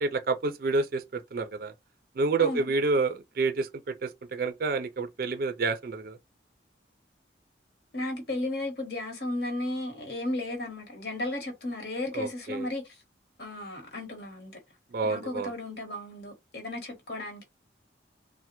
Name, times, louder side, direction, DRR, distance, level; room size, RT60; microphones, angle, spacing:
voice 1, 0.0-1.7 2.2-6.2 12.1-12.7 14.9-15.5, right 3 dB, 50° right, 0.4 m, -29 dB
voice 2, 2.4-2.7 7.9-13.0 13.4-14.6 15.0-17.4, left 1 dB, 60° left, 1.0 m, -34 dB
3.2 x 2.1 x 2.9 m
head